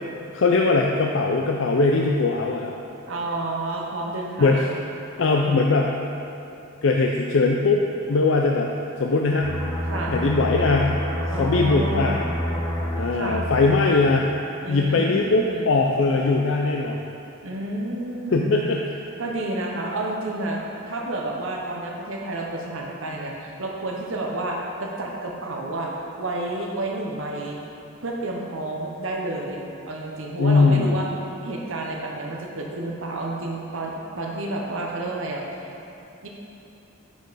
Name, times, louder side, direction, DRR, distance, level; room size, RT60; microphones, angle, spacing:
voice 1, 0.3-2.8 4.4-4.7 5.2-6.0 6.8-7.8 8.1-8.7 9.0-9.6 10.1-11.0 11.4-12.2 13.0-14.3 14.7-17.0 18.3-18.8 30.4-31.0, left 3 dB, 60° left, 0 dB, 0.4 m, -20 dB
voice 2, 3.1-4.8 9.9-10.2 11.3-12.2 13.1-13.5 14.6-15.7 17.4-18.7 19.2-27.6 28.0-31.1 31.4-35.7 36.2-36.3, right 2 dB, 65° right, -1 dB, 0.9 m, -30 dB
sound 1, 9.4-14.8 15.1-15.4, equal, 15° left, 1.0 m, -29 dB
10.0 x 5.3 x 4.1 m, 2.9 s
head